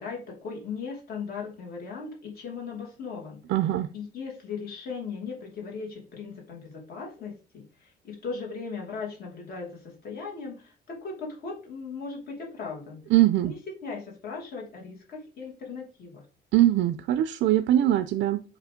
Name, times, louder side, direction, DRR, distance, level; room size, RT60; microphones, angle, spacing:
voice 1, 0.0-3.4 3.9-13.1 13.4-16.2, left 5 dB, 55° left, -1 dB, 2.6 m, -38 dB
voice 2, 3.5-3.9 13.1-13.5 16.5-18.4, right 13 dB, 90° right, 10 dB, 0.5 m, -22 dB
7.4 x 3.1 x 5.1 m, 0.34 s
cardioid pair, 170°, 19 cm